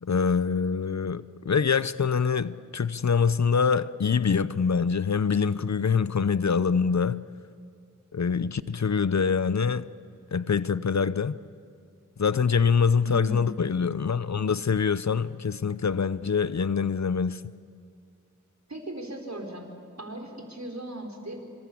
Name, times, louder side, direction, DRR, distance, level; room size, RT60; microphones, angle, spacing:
voice 1, 0.0-7.2 8.1-9.9 10.3-11.3 12.2-17.4, left 6 dB, 60° left, 0.6 m, -25 dB
voice 2, 13.0-13.5 18.7-19.6 20.0-21.4, right 1 dB, 60° right, 4.4 m, -37 dB
26.0 x 26.0 x 8.6 m
wide cardioid pair, 60°, 32 cm